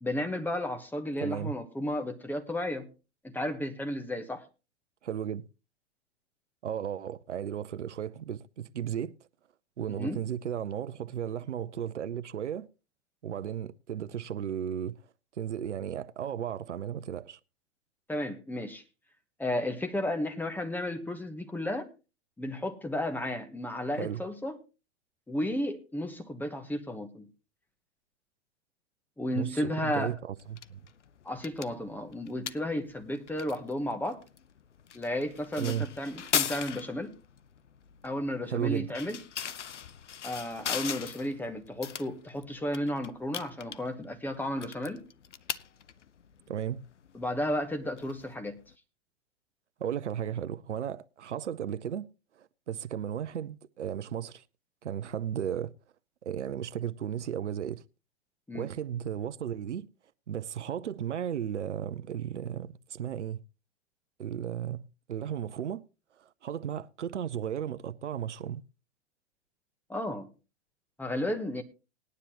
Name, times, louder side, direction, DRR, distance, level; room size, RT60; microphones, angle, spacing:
voice 1, 0.0-2.9 3.2-4.4 10.0-10.2 18.1-18.8 19.4-21.9 22.4-24.6 25.3-27.3 29.2-30.1 31.2-34.2 34.9-37.2 38.0-39.2 40.2-45.1 47.1-48.6 58.5-58.7 69.9-70.3 71.0-71.6, left 1 dB, 5° left, 1.2 m, -33 dB
voice 2, 1.2-1.5 5.0-5.4 6.6-9.1 9.8-12.7 13.2-15.0 15.4-17.4 24.0-24.2 29.3-30.8 35.6-35.9 38.5-38.9 46.5-46.8 49.8-52.1 52.4-54.4 54.8-55.7 56.2-57.8 58.5-59.9 60.3-63.4 64.2-65.8 66.2-68.6, right 9 dB, 80° right, 0.7 m, -35 dB
sound 1, 30.4-48.7, left 8 dB, 90° left, 0.6 m, -40 dB
19.5 x 9.8 x 2.9 m
hypercardioid pair, 110°, 35 cm